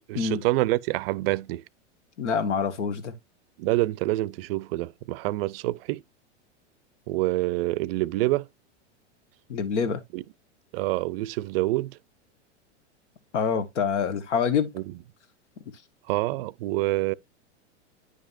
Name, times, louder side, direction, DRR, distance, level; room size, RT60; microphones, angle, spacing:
voice 1, 0.1-1.6 3.6-6.0 7.1-8.5 10.1-10.2 10.7-12.0 14.7-15.0 16.1-17.1, right 19 dB, 55° right, 0.5 m, -26 dB
voice 2, 2.2-3.1 9.5-10.0 13.3-14.7, left 6 dB, 80° left, 1.5 m, -26 dB
9.8 x 5.2 x 2.6 m
hypercardioid pair, 115°, 35 cm